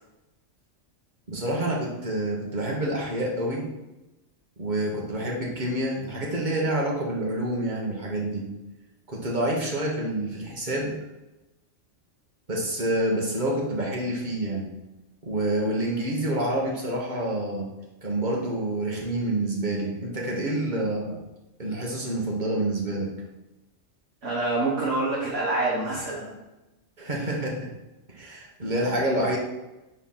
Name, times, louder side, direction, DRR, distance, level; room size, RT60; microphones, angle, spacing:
voice 1, 1.3-3.7 4.6-8.4 9.1-10.9 12.5-14.7 15.2-17.7 18.0-21.2 21.6-23.1 27.0-27.7 28.1-29.4, right 1 dB, 40° right, -2 dB, 1.4 m, -27 dB
voice 2, 24.2-26.3, right 2 dB, 65° right, -8 dB, 1.8 m, -26 dB
4.5 x 4.4 x 5.6 m, 1.0 s
omnidirectional pair, 1.3 m